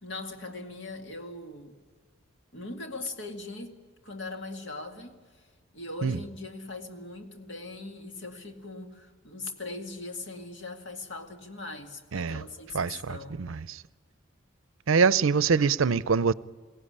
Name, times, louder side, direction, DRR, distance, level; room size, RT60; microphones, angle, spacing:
voice 1, 0.0-1.8 2.5-5.2 5.7-13.4, left 2 dB, 65° left, 2.2 m, -40 dB
voice 2, 12.1-12.4 12.7-13.8 14.9-16.3, right 5 dB, 85° right, 0.6 m, -24 dB
22.0 x 17.0 x 10.0 m
head